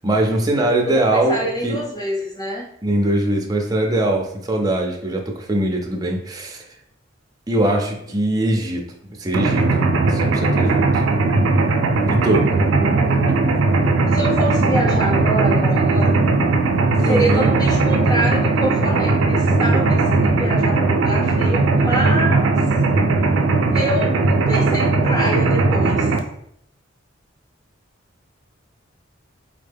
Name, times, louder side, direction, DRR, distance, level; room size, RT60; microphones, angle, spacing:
voice 1, 0.0-1.8 2.8-6.6 7.5-8.9 9.2-9.7 10.1-11.0 12.1-12.5 17.0-17.5, right 1 dB, 20° right, 1 dB, 0.5 m, -21 dB
voice 2, 0.5-2.7 12.5-13.4 14.1-16.2 17.0-22.5 23.7-26.1, right 1 dB, 20° left, -2 dB, 0.7 m, -26 dB
Mechanisms, 9.3-26.2, right 3 dB, 80° right, 0.4 m, -18 dB
3.9 x 2.1 x 3.4 m, 0.71 s
head